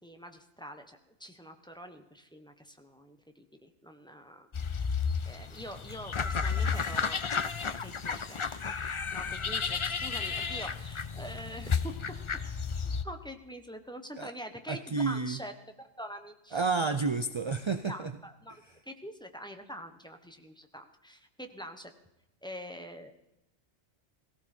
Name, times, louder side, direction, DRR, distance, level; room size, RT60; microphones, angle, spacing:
voice 1, 0.0-4.8 5.2-7.2 7.8-8.4 9.1-11.9 12.8-15.5 16.0-16.6 17.9-21.9 22.4-23.1, equal, 5° left, 6 dB, 1.2 m, -45 dB
sound 1, 4.5-13.0, left 5 dB, 35° left, 0.5 m, -32 dB
voice 2, 14.7-15.4 16.5-18.1, right 4 dB, 35° right, 10 dB, 0.5 m, -30 dB
17.5 x 17.0 x 4.5 m, 0.91 s
omnidirectional pair, 1.3 m